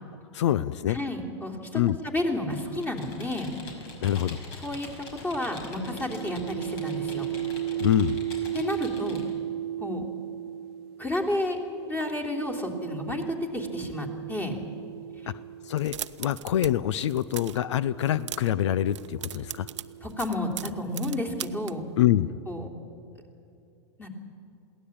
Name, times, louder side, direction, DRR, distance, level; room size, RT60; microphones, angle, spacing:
voice 1, 0.3-1.0 1.7-2.0 4.0-4.4 7.8-8.2 15.6-19.7 22.0-22.3, left 12 dB, 75° left, 17 dB, 0.6 m, -25 dB
voice 2, 0.9-3.5 4.6-4.9 5.2-7.3 8.5-9.2 9.8-10.1 11.0-11.6 11.9-14.6 15.2-15.3 20.0-21.8 22.5-22.7 24.0-24.1, left 1 dB, 15° left, 2 dB, 3.2 m, -31 dB
Computer keyboard, 2.5-9.3, left 3 dB, 60° left, 5.8 m, -44 dB
sound 1, 5.8-16.2 17.1-20.8, right 11 dB, 55° right, 0.5 m, -36 dB
sound 2, 15.7-16.7 17.0-17.6 18.0-18.6 18.9-21.7, right 11 dB, 85° right, 0.8 m, -38 dB
22.5 x 17.0 x 8.7 m, 2.6 s
hypercardioid pair, 125°, 15 cm